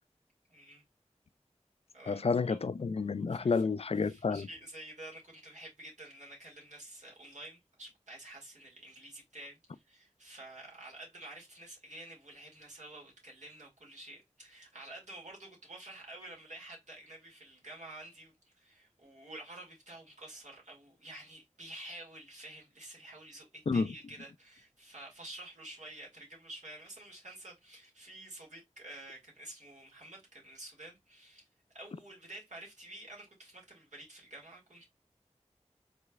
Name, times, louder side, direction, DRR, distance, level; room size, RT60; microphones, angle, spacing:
voice 1, 0.5-0.8 1.9-2.2 2.5-2.6 3.3-3.6 4.0-31.5 31.7-34.9, right 1 dB, 85° right, 2.2 m, -50 dB
voice 2, 2.1-4.5 23.7-23.9, left 4 dB, 55° left, 0.4 m, -30 dB
4.9 x 3.2 x 2.4 m
wide cardioid pair, 50°, 12 cm